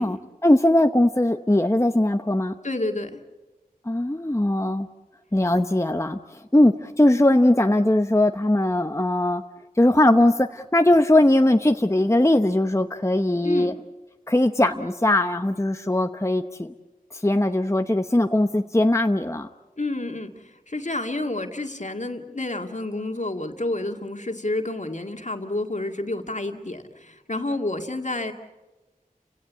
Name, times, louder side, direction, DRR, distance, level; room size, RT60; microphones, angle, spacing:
voice 1, 0.0-2.6 3.8-4.9 5.3-9.4 9.8-13.7 14.3-16.7 17.1-19.5, left 1 dB, 20° left, 7 dB, 0.9 m, -20 dB
voice 2, 2.6-3.2 13.4-13.7 19.8-28.3, left 2 dB, 55° left, 4 dB, 2.2 m, -29 dB
30.0 x 17.0 x 8.3 m, 1.1 s
wide cardioid pair, 40°, 15 cm